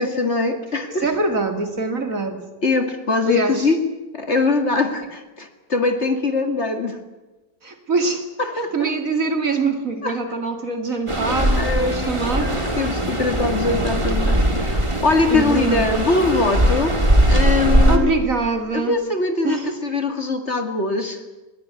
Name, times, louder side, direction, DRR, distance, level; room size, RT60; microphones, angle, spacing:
voice 1, 0.0-1.1 2.6-3.8 4.1-7.0 8.4-8.9 10.0-10.1 11.3-17.0 17.3-18.1 18.7-21.2, left 3 dB, 40° left, 7 dB, 2.3 m, -22 dB
voice 2, 0.9-2.4 3.3-3.7 7.6-8.3 8.6-12.5 15.3-15.9 17.9-18.9 19.4-19.7, right 3 dB, 50° right, 7 dB, 2.7 m, -23 dB
sound 1, 11.1-18.0, right 1 dB, 15° right, 2.4 m, -20 dB
20.5 x 18.5 x 9.6 m, 1.1 s
omnidirectional pair, 1.9 m